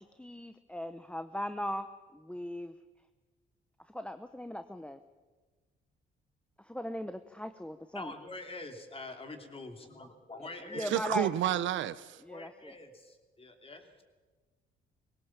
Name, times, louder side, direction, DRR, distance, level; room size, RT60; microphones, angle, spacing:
voice 1, 0.0-1.9 2.1-2.7 3.9-5.0 6.7-8.1 10.4-11.3 12.3-12.7, left 1 dB, 5° left, 10 dB, 0.8 m, -38 dB
voice 2, 7.9-10.9 12.3-14.0, left 2 dB, 30° left, 5 dB, 3.0 m, -45 dB
voice 3, 10.7-12.2, right 12 dB, 75° right, 16 dB, 0.7 m, -30 dB
21.0 x 17.5 x 7.3 m, 1.4 s
cardioid pair, 90°, 20 cm